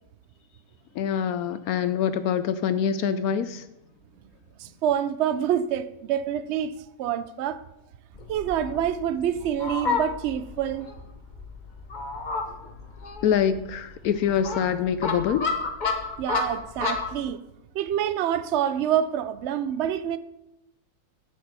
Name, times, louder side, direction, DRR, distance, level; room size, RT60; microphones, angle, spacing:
voice 1, 0.9-3.6 13.2-15.5, left 8 dB, 70° left, 0.9 m, -25 dB
voice 2, 4.6-7.6 8.3-10.9 16.2-17.4 17.7-20.2, right 9 dB, 85° right, 0.6 m, -27 dB
Fowl, 8.1-17.2, left 4 dB, 35° left, 0.9 m, -31 dB
10.0 x 8.8 x 4.1 m
omnidirectional pair, 1.8 m